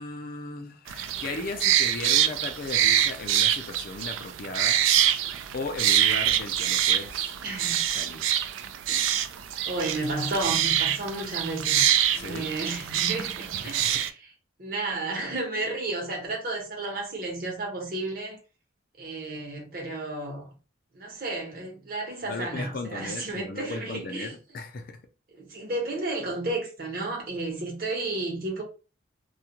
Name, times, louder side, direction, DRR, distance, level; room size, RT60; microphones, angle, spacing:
voice 1, 0.0-4.8 5.5-7.3 8.0-8.3 12.1-12.5 13.6-14.0 22.3-25.0, left 3 dB, 50° left, 0.4 m, -36 dB
sound 1, 0.9-14.1, right 11 dB, 85° right, 0.3 m, -25 dB
voice 2, 7.4-7.8 8.9-9.3 9.6-11.8 12.1-14.3 14.6-18.4 19.0-20.5 20.9-24.3 25.4-28.6, right 2 dB, 50° right, 0.9 m, -32 dB
2.3 x 2.1 x 2.8 m
head